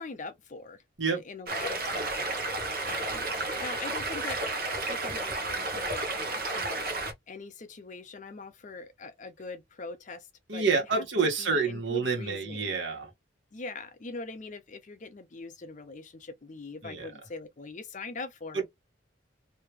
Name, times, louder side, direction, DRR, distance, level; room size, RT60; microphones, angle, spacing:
voice 1, 0.0-0.8 1.1-3.2 3.6-4.4 4.6-6.9 7.3-10.3 10.5-11.0 11.4-12.8 13.5-18.6, left 3 dB, 40° left, 0.6 m, -42 dB
Stream, 1.5-7.1, right 2 dB, 50° right, 1.0 m, -32 dB
voice 2, 10.5-13.1 16.8-17.1 18.5-18.6, right 4 dB, 75° right, 1.6 m, -28 dB
3.2 x 2.8 x 3.2 m
head